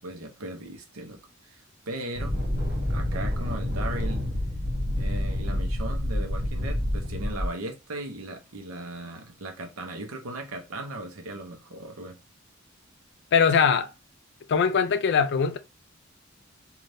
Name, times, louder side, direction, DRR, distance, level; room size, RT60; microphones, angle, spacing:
voice 1, 0.0-2.4 2.9-4.2 5.0-12.2, right 2 dB, 90° right, 0.7 m, -37 dB
sound 1, 2.2-7.5, left 1 dB, 50° right, 1.8 m, -28 dB
voice 2, 13.3-13.9 14.5-15.6, left 6 dB, 55° left, 0.4 m, -21 dB
3.3 x 2.4 x 2.6 m
head